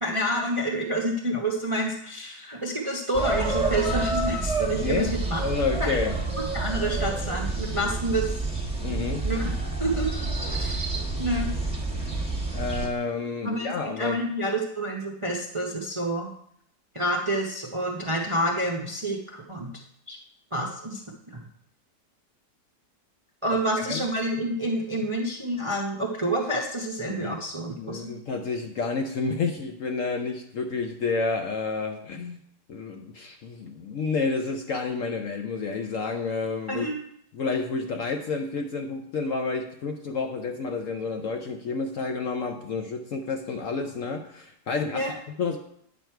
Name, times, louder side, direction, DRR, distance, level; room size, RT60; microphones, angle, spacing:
voice 1, 0.0-5.4 5.8-5.9 6.5-8.3 9.2-9.5 9.8-10.9 11.2-11.5 13.4-16.3 16.9-19.8 20.1-20.2 20.5-21.0 21.3-21.4 23.4-28.1 36.7-37.0 44.9-45.1, right 1 dB, 30° right, 0 dB, 0.6 m, -28 dB
sound 1, 3.1-12.9, right 3 dB, 5° right, 1.1 m, -28 dB
voice 2, 4.8-5.1 5.4-6.2 8.8-9.2 11.9-12.1 12.5-14.3 23.8-24.0 27.1-27.4 27.8-32.4 32.7-36.9 37.3-45.6, left 4 dB, 65° left, 4 dB, 0.9 m, -30 dB
9.2 x 6.2 x 4.5 m, 0.69 s
omnidirectional pair, 1.9 m